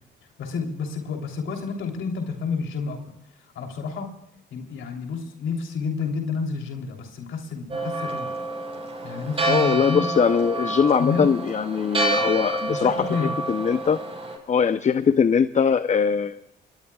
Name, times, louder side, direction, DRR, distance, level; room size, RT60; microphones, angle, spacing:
voice 1, 0.4-3.0 3.5-4.1 4.5-8.3 9.0-10.1 11.0-11.3 12.2-12.4 12.7-13.4, left 5 dB, 75° left, 2 dB, 3.3 m, -30 dB
Church bell, 7.7-14.4, right 2 dB, 30° right, 7.3 m, -28 dB
voice 2, 9.5-14.0 14.5-16.4, left 6 dB, 35° left, 12 dB, 0.7 m, -21 dB
26.5 x 21.5 x 2.4 m, 0.78 s
cardioid pair, 90°, 20 cm